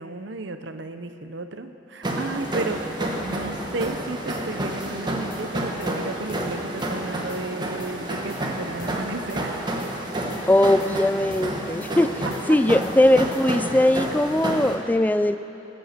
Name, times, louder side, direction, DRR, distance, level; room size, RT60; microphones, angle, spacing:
voice 1, 0.0-2.8 3.2-9.6, right 3 dB, 65° right, 8 dB, 0.8 m, -33 dB
sound 1, 2.0-14.7, right 1 dB, 25° right, 1.3 m, -29 dB
sound 2, 3.8-4.0 4.3-4.4 4.8-5.0 5.3-5.9 6.3-6.5 6.8-6.9 7.3-7.5 7.8-8.4 8.8-9.0 9.3-9.4 9.8-10.0 10.3-10.9 11.3-11.5 11.8-11.9 12.3-12.5 12.8-13.4, left 2 dB, 70° left, 3.1 m, -46 dB
voice 2, 10.5-12.1 12.5-15.4, left 1 dB, 10° left, 11 dB, 0.3 m, -20 dB
20.5 x 7.8 x 6.7 m, 2.9 s
head